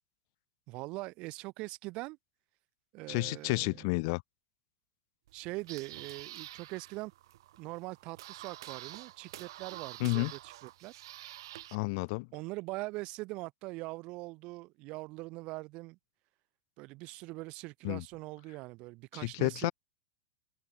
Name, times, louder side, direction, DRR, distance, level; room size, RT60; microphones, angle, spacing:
voice 1, 0.7-2.2 2.9-3.9 5.3-7.1 7.6-11.0 12.3-16.0 16.8-19.7, right 23 dB, 45° right, 0.7 m, -42 dB
voice 2, 3.1-4.2 10.0-10.3 11.7-12.3 17.8-18.0 19.1-19.7, left 29 dB, 55° left, 0.6 m, -31 dB
sound 1, 5.3-11.7, right 15 dB, 70° right, 1.0 m, -48 dB
supercardioid pair, 130°, 2 cm